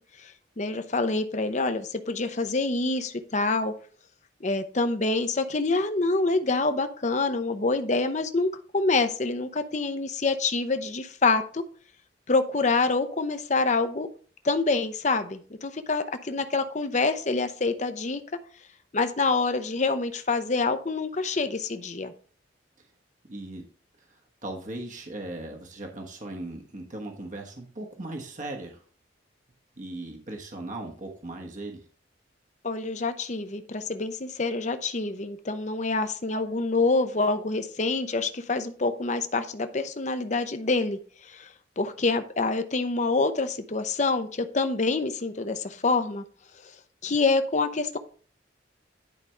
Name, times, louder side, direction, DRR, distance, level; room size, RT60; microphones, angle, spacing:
voice 1, 0.2-3.7 4.4-11.6 12.3-14.1 14.4-18.2 18.9-22.1 32.6-46.2 47.0-48.0, left 3 dB, 40° left, 9 dB, 0.7 m, -26 dB
voice 2, 23.3-23.7 24.1-28.8 29.8-31.8, right 2 dB, 40° right, 2 dB, 1.3 m, -38 dB
10.5 x 5.1 x 3.3 m, 0.42 s
head